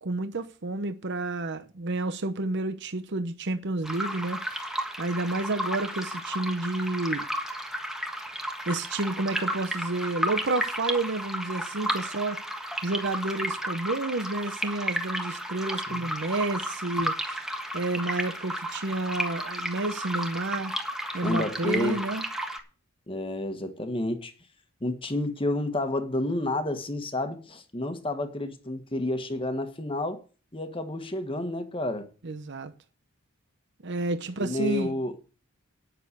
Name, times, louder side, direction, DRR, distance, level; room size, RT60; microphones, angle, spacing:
voice 1, 0.0-4.7 5.0-7.3 8.7-12.4 12.8-17.4 17.7-20.7 21.1-22.2 32.2-32.7 33.8-34.9, right 2 dB, 55° right, 0.8 m, -30 dB
sound 1, 3.8-22.6, equal, ahead, 1.4 m, -33 dB
voice 2, 21.2-22.0 23.1-24.3 24.8-30.2 30.5-32.1 34.4-35.1, left 1 dB, 25° left, 1.4 m, -30 dB
10.0 x 6.7 x 8.1 m
head